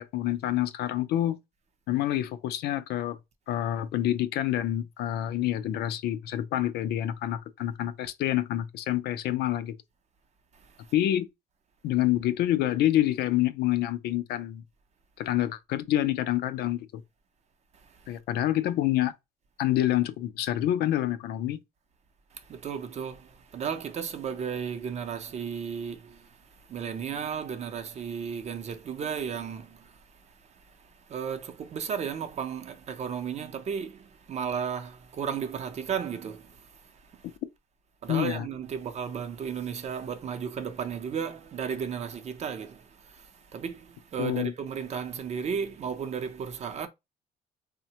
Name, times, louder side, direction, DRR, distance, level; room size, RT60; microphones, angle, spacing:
voice 1, 0.0-1.4 1.9-3.2 3.5-9.8 10.9-11.3 11.8-14.6 15.2-16.9 18.1-19.1 19.6-21.6 38.1-38.5 44.2-44.5, left 13 dB, 70° left, 0.4 m, -27 dB
voice 2, 10.5-10.9 17.7-18.2 22.3-37.4 38.0-46.9, right 7 dB, 40° right, 0.6 m, -35 dB
3.2 x 2.1 x 2.8 m
cardioid pair, 110°, 17 cm